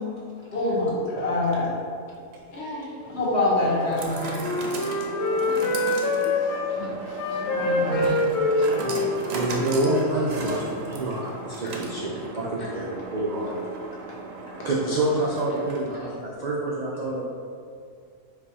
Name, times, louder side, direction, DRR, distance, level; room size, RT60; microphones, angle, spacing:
voice 1, 0.5-1.7 3.1-4.9 6.7-6.9 7.3-8.1 9.4-9.5, left 2 dB, 55° left, -8 dB, 1.5 m, -26 dB
sound 1, 2.1-16.1, right 3 dB, 60° right, 0.7 m, -37 dB
voice 2, 2.5-3.2 5.4-6.5 7.3-9.4 10.9-11.1 14.5-14.7, left 1 dB, 85° left, -4 dB, 1.4 m, -38 dB
Wind instrument woodwind instrument, 3.5-6.7 7.1-10.5, left 2 dB, 70° left, 1.0 m, -26 dB
voice 3, 9.3-13.6 14.6-17.2, right 1 dB, 80° right, -5 dB, 0.3 m, -27 dB
4.7 x 2.4 x 4.0 m, 2.2 s
omnidirectional pair, 1.4 m